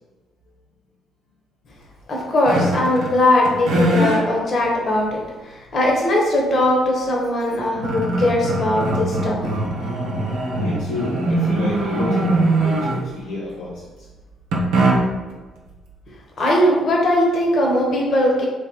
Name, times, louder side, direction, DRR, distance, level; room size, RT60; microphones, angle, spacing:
voice 1, 2.1-9.5 16.4-18.4, left 1 dB, 50° left, -2 dB, 1.3 m, -19 dB
sound 1, 2.5-3.2 3.5-4.2 4.9-5.0 7.1-7.2 7.5-13.3 14.5-15.3, right 2 dB, 65° right, 0.8 m, -21 dB
voice 2, 10.6-13.8, left 2 dB, 75° left, -7 dB, 0.7 m, -29 dB
3.3 x 3.3 x 4.7 m, 1.2 s
figure-of-eight pair, 45°, 0 cm